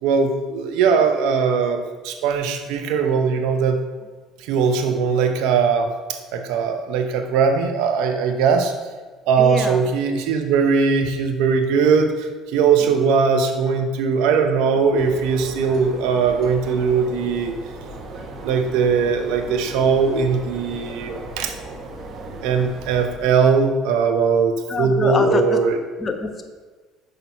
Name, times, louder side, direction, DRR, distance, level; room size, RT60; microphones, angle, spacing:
voice 1, 0.0-3.8 4.4-8.7 9.3-17.5 18.4-21.6 22.4-25.8, right 5 dB, 70° right, 6 dB, 0.9 m, -20 dB
voice 2, 9.4-9.9 12.9-13.0 24.7-25.7 26.0-26.4, left 3 dB, 30° left, 4 dB, 1.2 m, -25 dB
sound 1, 15.0-23.2, right 2 dB, 50° right, 1.2 m, -37 dB
6.5 x 5.3 x 5.6 m, 1.4 s
hypercardioid pair, 65°, 0 cm